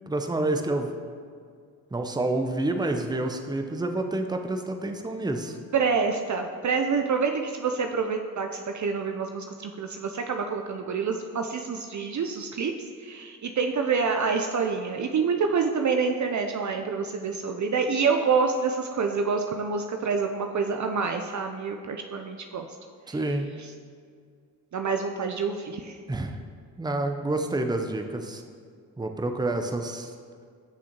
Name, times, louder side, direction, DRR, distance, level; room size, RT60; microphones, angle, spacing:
voice 1, 0.1-0.9 1.9-5.6 23.1-23.5 26.1-26.4 26.8-28.4 29.0-30.1, right 2 dB, 10° right, 5 dB, 0.8 m, -28 dB
voice 2, 5.7-12.7 13.0-22.7 24.7-26.0, right 5 dB, 40° right, 4 dB, 0.7 m, -27 dB
13.5 x 6.2 x 3.0 m, 2.1 s
hypercardioid pair, 40°, 46 cm